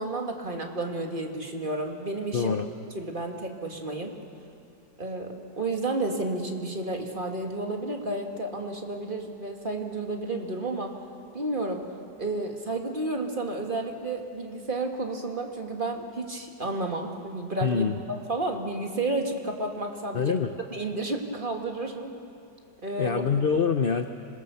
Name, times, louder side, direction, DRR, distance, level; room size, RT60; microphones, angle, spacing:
voice 1, 0.0-2.6 2.9-4.1 5.0-10.9 11.3-11.8 12.2-17.8 18.3-20.3 20.7-22.1 22.8-23.2, right 2 dB, 30° right, 2 dB, 2.0 m, -31 dB
voice 2, 2.3-2.7 17.6-18.0 20.1-20.6 23.0-24.1, left 6 dB, 60° left, 8 dB, 0.6 m, -25 dB
26.0 x 21.5 x 7.0 m, 2.6 s
omnidirectional pair, 1.9 m